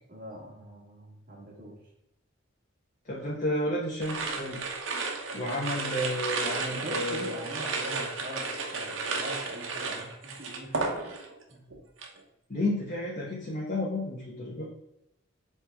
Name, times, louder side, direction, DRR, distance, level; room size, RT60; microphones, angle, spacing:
voice 1, 0.1-1.8 6.7-11.1 11.5-11.7, equal, 45° right, -1 dB, 1.7 m, -43 dB
voice 2, 3.0-4.6 5.3-7.3 12.5-14.6, left 1 dB, 40° left, -5 dB, 1.2 m, -31 dB
sound 1, 4.0-11.4 11.7-12.2, right 4 dB, 75° right, 1.0 m, -33 dB
7.8 x 3.5 x 3.5 m, 0.84 s
head